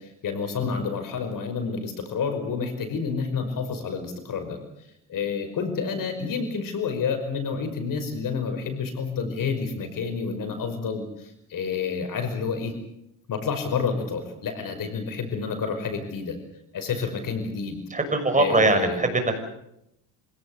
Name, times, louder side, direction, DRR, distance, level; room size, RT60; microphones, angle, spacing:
voice 1, 0.0-4.6 5.1-12.8 13.3-16.4 16.7-17.8 18.4-19.0, left 5 dB, 50° left, 8 dB, 5.6 m, -29 dB
voice 2, 17.9-19.4, right 3 dB, 20° right, 6 dB, 6.2 m, -22 dB
26.5 x 18.0 x 8.0 m, 0.81 s
cardioid pair, 100°, 41 cm